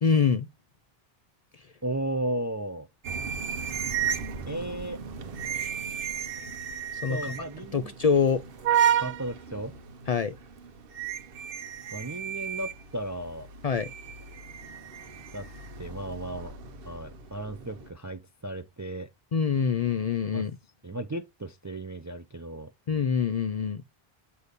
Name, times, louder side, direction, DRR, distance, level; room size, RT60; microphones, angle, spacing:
voice 1, 0.0-0.5 7.0-7.3 7.7-8.4 10.1-10.3 13.6-13.9 19.3-20.6 22.9-23.8, left 6 dB, 55° left, 0.4 m, -25 dB
voice 2, 1.8-2.9 4.5-5.0 7.1-7.9 9.0-9.7 11.9-13.5 15.3-15.5 15.8-16.5 16.8-19.1 20.3-20.4 20.8-22.7, right 1 dB, 30° right, 0.3 m, -35 dB
sound 1, 3.0-17.9, right 8 dB, 65° right, 0.9 m, -33 dB
8.1 x 2.8 x 5.2 m
omnidirectional pair, 1.0 m